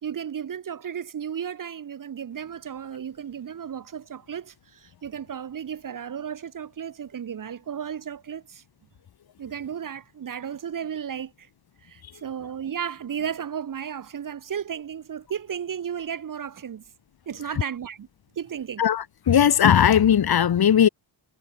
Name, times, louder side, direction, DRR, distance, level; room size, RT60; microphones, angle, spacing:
voice 1, 0.0-8.6 9.4-11.5 11.8-16.8 17.3-18.1 18.4-18.8, right 8 dB, 45° right, 0.9 m, -34 dB
voice 2, 18.8-20.9, left 9 dB, 50° left, 1.1 m, -18 dB
wide cardioid pair, 160°, 47 cm